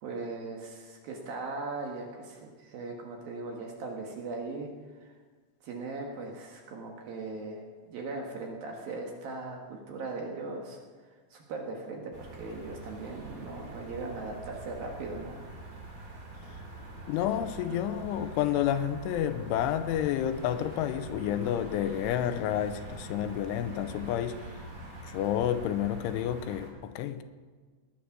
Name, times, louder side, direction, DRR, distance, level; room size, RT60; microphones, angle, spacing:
voice 1, 0.0-4.7 5.0-5.1 5.6-10.8 11.3-15.4, right 3 dB, 60° right, 1 dB, 2.7 m, -39 dB
sound 1, 12.1-26.7, right 2 dB, 25° right, 2.0 m, -44 dB
voice 2, 17.1-24.5 25.0-27.2, left 10 dB, 85° left, 10 dB, 3.2 m, -30 dB
20.5 x 10.0 x 6.0 m, 1.5 s
omnidirectional pair, 5.6 m